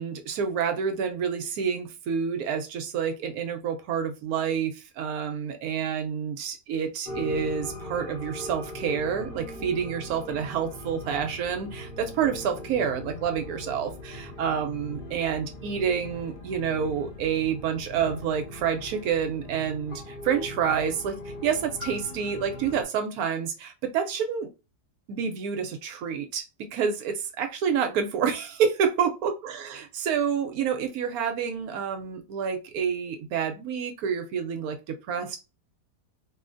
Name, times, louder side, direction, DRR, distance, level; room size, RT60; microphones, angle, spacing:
voice 1, 0.0-24.5 25.1-26.4 26.7-35.4, right 7 dB, 70° right, 6 dB, 1.0 m, -28 dB
sound 1, 7.0-22.8, left 1 dB, 45° left, 0.7 m, -40 dB
3.1 x 2.6 x 2.5 m, 0.29 s
omnidirectional pair, 1.7 m